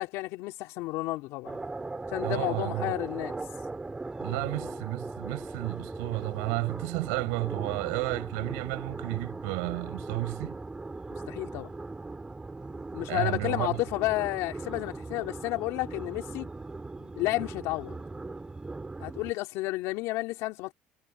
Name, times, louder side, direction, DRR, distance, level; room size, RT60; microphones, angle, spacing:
voice 1, 0.0-1.7 2.1-3.4 4.3-4.7 8.4-8.5 11.3-11.7 12.9-16.5 17.0-18.0 19.0-20.7, left 19 dB, 75° left, 3.2 m, -32 dB
sound 1, 1.4-19.3, right 3 dB, 15° right, 3.7 m, -39 dB
voice 2, 2.2-3.0 4.2-10.6 13.1-13.8, right 36 dB, 80° right, 5.9 m, -32 dB
supercardioid pair, 85°, 5 cm